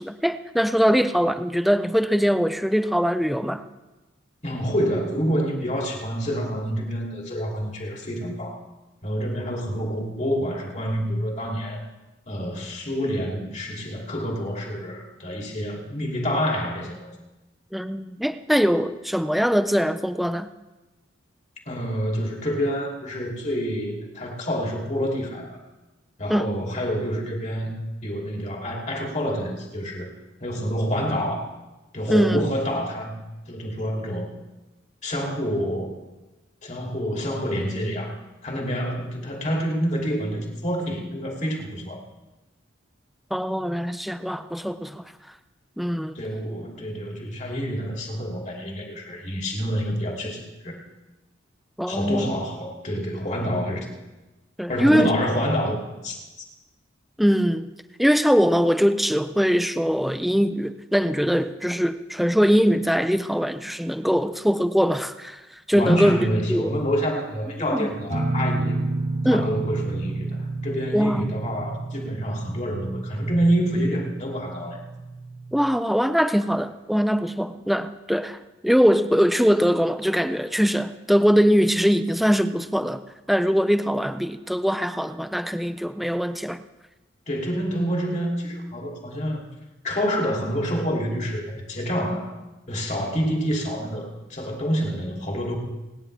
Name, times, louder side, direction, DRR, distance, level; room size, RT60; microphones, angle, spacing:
voice 1, 0.0-3.6 17.7-20.5 26.3-26.5 32.1-32.4 43.3-45.0 45.8-46.2 51.8-52.3 54.6-55.1 57.2-57.7 58.0-65.4 65.7-66.2 66.5-66.7 67.7-67.9 69.2-69.5 70.9-71.2 75.5-78.4 78.6-83.0 83.3-86.6, equal, ahead, 10 dB, 0.5 m, -22 dB
voice 2, 4.4-8.6 9.0-11.8 12.3-17.1 21.7-25.6 26.2-27.8 28.0-30.1 30.4-31.4 31.9-33.2 33.5-34.3 35.0-36.0 36.6-42.0 46.1-50.8 51.9-53.9 54.7-56.2 65.7-68.8 69.3-74.8 87.3-89.4 89.8-92.3 92.7-95.6, equal, 35° left, -1 dB, 2.8 m, -27 dB
sound 1, 68.1-75.7, right 2 dB, 35° right, 1.0 m, -30 dB
26.0 x 10.0 x 3.4 m, 1.1 s
head